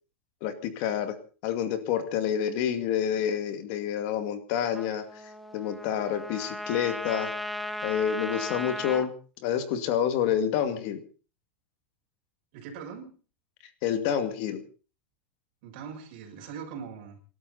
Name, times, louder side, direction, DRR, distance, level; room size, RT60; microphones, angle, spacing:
voice 1, 0.4-1.2 1.4-5.0 5.5-7.3 7.8-9.1 9.4-11.0 13.8-14.6, left 9 dB, 40° left, 8 dB, 2.3 m, -28 dB
Trumpet, 4.7-9.1, left 1 dB, ahead, 1.0 m, -36 dB
voice 2, 12.5-13.1 15.6-17.2, right 6 dB, 45° right, 0 dB, 7.0 m, -41 dB
27.5 x 12.5 x 4.1 m, 0.38 s
supercardioid pair, 170°, 6 cm